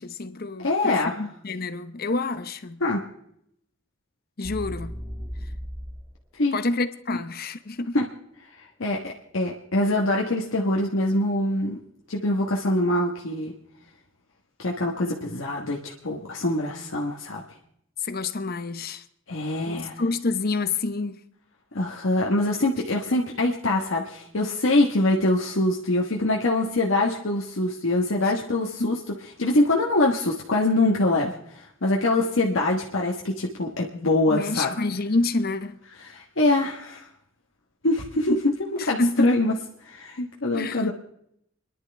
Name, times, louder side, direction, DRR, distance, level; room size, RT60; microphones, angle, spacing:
voice 1, 0.0-2.8 4.4-4.9 6.5-8.0 18.0-19.0 19.7-21.2 28.8-29.0 34.3-35.8 38.8-39.3 40.5-40.9, left 3 dB, 50° left, 0.9 m, -27 dB
voice 2, 0.6-1.2 2.8-3.0 6.3-6.6 7.9-8.1 8.6-11.8 12.1-13.5 14.6-17.4 19.3-20.0 21.7-28.9 29.4-34.7 36.0-37.1 37.8-39.6 39.8-40.9, left 2 dB, 80° left, 1.3 m, -24 dB
sound 1, 4.4-6.1, equal, 5° right, 1.4 m, -35 dB
29.5 x 11.0 x 3.4 m
head